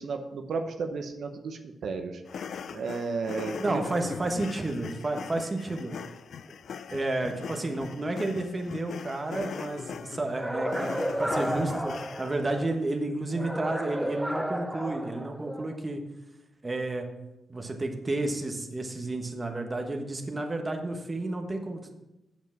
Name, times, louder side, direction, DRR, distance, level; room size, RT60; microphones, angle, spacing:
voice 1, 0.0-2.2 2.7-3.8, right 4 dB, 70° right, 5 dB, 0.9 m, -33 dB
sound 1, 2.3-12.5, left 6 dB, 70° left, 0.4 m, -41 dB
voice 2, 3.6-5.9 6.9-10.9 11.2-11.9 12.2-16.0 16.6-17.1 17.5-21.9, right 2 dB, 25° right, 4 dB, 1.2 m, -31 dB
sound 2, 10.3-12.8 13.3-15.8, right 1 dB, 5° right, 0.7 m, -32 dB
8.0 x 7.3 x 6.0 m, 0.98 s
wide cardioid pair, 120°, 0 cm